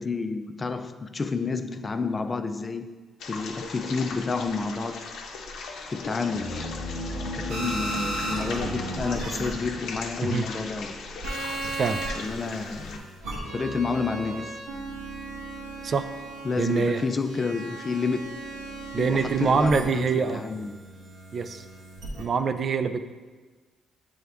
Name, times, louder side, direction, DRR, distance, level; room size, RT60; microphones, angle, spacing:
voice 1, 0.0-2.9 3.3-5.1 5.9-6.8 7.3-10.9 12.2-13.1 13.5-14.6 16.4-18.4 19.0-20.8, left 4 dB, 30° left, 9 dB, 0.3 m, -30 dB
sound 1, 3.2-13.0, left 4 dB, 75° left, 0.6 m, -39 dB
sound 2, 6.1-12.1, equal, 30° right, 1.0 m, -38 dB
sound 3, 7.5-10.0 11.2-22.2, right 2 dB, 90° right, 1.2 m, -36 dB
voice 2, 11.7-12.0 15.8-16.1 16.6-17.0 18.9-20.4 21.3-21.6 22.2-23.0, right 5 dB, 50° right, 10 dB, 0.3 m, -25 dB
8.0 x 3.5 x 3.5 m, 1.3 s
cardioid pair, 90°, 0 cm